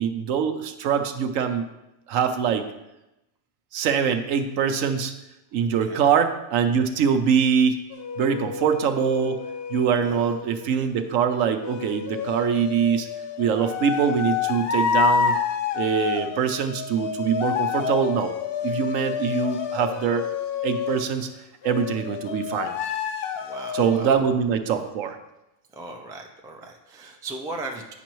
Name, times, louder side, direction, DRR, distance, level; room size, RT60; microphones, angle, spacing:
voice 1, 0.0-1.6 2.1-2.7 3.7-5.1 5.5-7.8 8.2-9.4 9.7-13.1 13.4-15.3 15.7-18.3 18.6-20.3 20.6-21.3 21.6-22.7 23.7-25.2, right 7 dB, 75° right, 8 dB, 1.0 m, -23 dB
sound 1, 7.9-10.7 11.6-21.1 21.6-24.3, left 7 dB, 60° left, 0.7 m, -29 dB
voice 2, 10.0-10.3 23.4-24.1 25.7-27.9, right 2 dB, 5° right, 1 dB, 0.3 m, -38 dB
9.1 x 6.0 x 3.0 m, 0.93 s
omnidirectional pair, 1.4 m